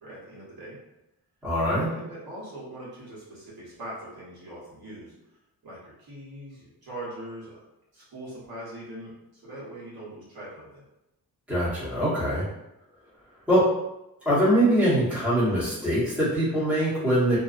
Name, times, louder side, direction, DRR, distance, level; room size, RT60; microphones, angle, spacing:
voice 1, 0.0-0.8 1.7-5.1 5.6-7.6 7.9-10.9, right 1 dB, 70° right, -7 dB, 1.1 m, -41 dB
voice 2, 1.4-1.9 11.5-12.4 13.5-13.6 14.2-17.4, equal, 5° right, -11 dB, 1.1 m, -23 dB
2.5 x 2.3 x 2.5 m, 0.90 s
wide cardioid pair, 150°, 38 cm